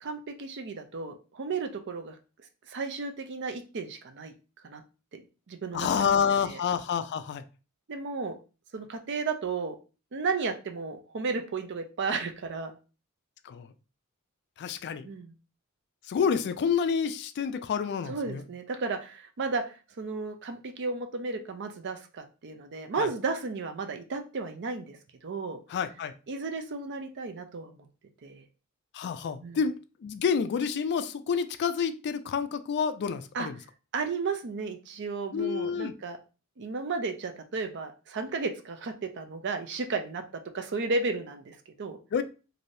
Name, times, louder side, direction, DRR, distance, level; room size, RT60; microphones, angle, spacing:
voice 1, 0.0-2.2 2.7-4.3 4.6-4.8 5.1-6.1 6.4-6.6 7.9-8.3 8.7-9.8 10.1-12.8 15.0-15.3 18.1-25.0 25.2-25.6 26.3-27.9 28.2-28.4 29.4-29.6 33.3-33.5 33.9-36.2 36.6-40.2 40.5-42.0, right 4 dB, 55° right, 6 dB, 0.5 m, -33 dB
voice 2, 5.7-7.4 13.5-13.6 14.6-15.1 16.1-18.4 23.0-23.1 25.7-26.1 28.9-29.7 30.0-33.5 35.3-35.9 42.1-42.2, left 6 dB, 50° left, 11 dB, 0.3 m, -28 dB
3.2 x 2.6 x 2.6 m, 0.33 s
head